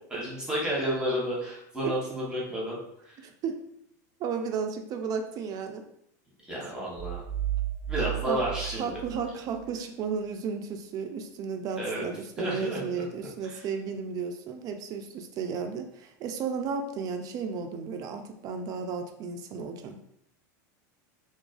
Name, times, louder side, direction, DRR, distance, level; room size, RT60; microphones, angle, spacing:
voice 1, 0.1-2.8 3.0-3.2 6.4-7.2 7.9-9.0 11.8-12.1 12.4-12.8 13.4-13.6, equal, 5° right, -5 dB, 0.9 m, -31 dB
voice 2, 3.2-3.6 4.2-5.9 8.3-8.4 8.8-20.0, right 6 dB, 40° right, 6 dB, 0.3 m, -34 dB
sound 1, 6.9-9.8, right 13 dB, 85° left, 0.8 m, -33 dB
2.3 x 2.3 x 2.3 m, 0.73 s
supercardioid pair, 115°, 10 cm